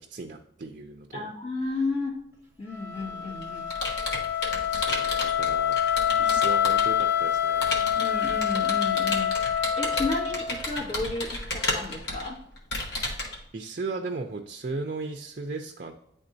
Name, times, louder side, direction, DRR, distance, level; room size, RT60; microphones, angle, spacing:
voice 1, 0.0-1.2 4.7-5.8 6.2-8.0 13.5-15.9, right 3 dB, 45° right, 4 dB, 0.5 m, -36 dB
voice 2, 1.1-2.2 2.6-3.7 4.8-4.9 6.0-6.4 7.9-12.4, left 3 dB, 35° left, -4 dB, 1.9 m, -33 dB
Wind instrument woodwind instrument, 2.7-10.7, left 9 dB, 15° right, 1.5 m, -26 dB
Computer keyboard, 3.0-7.0 7.6-13.4, left 2 dB, 65° left, 1.3 m, -32 dB
9.8 x 3.7 x 2.7 m, 0.78 s
head